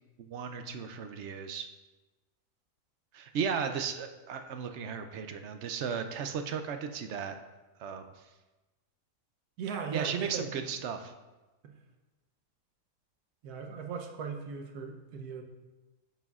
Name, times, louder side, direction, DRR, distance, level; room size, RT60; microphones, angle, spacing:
voice 1, 0.2-1.7 3.1-7.4 7.8-8.1 9.9-11.1, right 6 dB, 65° right, 7 dB, 0.7 m, -35 dB
voice 2, 9.6-10.4 11.6-11.7 13.4-15.4, right 6 dB, 85° right, 4 dB, 1.3 m, -38 dB
9.3 x 7.6 x 2.4 m, 1.1 s
omnidirectional pair, 1.6 m